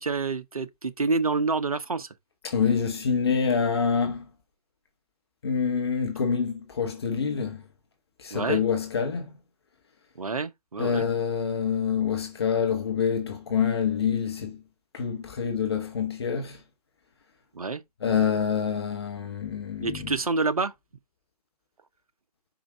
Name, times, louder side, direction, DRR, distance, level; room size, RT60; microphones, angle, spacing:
voice 1, 0.0-2.1 8.3-8.6 10.2-11.1 17.5-17.8 19.8-20.7, right 4 dB, 60° right, 1.0 m, -27 dB
voice 2, 2.4-4.2 5.4-7.6 8.2-9.3 10.8-14.6 14.9-16.6 18.0-20.1, left 6 dB, 40° left, 1.2 m, -26 dB
5.4 x 5.0 x 3.7 m
figure-of-eight pair, 145°, 21 cm